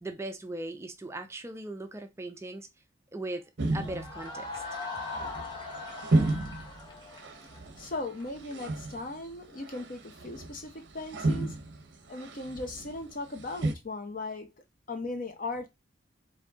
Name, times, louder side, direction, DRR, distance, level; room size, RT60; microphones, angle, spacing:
voice 1, 0.0-2.7 3.1-3.4 3.7-4.6, right 2 dB, 15° right, 0.4 m, -38 dB
sound 1, 3.6-13.7, right 2 dB, 65° right, 0.7 m, -33 dB
sound 2, 3.8-8.6, left 3 dB, 25° left, 1.0 m, -40 dB
voice 2, 7.8-11.6 12.1-14.5 14.9-15.7, left 2 dB, 45° left, 0.8 m, -38 dB
3.9 x 2.6 x 3.5 m
head